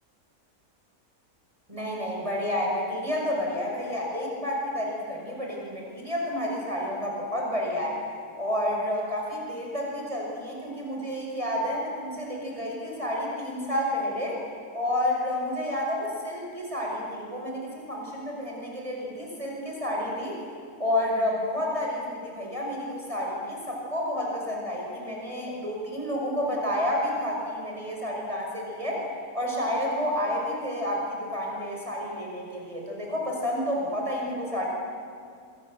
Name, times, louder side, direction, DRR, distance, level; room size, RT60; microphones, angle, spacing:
voice 1, 1.7-8.0 8.4-14.4 14.7-20.4 20.8-29.0 29.3-34.6, left 1 dB, 20° right, -3 dB, 6.0 m, -30 dB
26.5 x 26.0 x 7.9 m, 2.4 s
omnidirectional pair, 1.5 m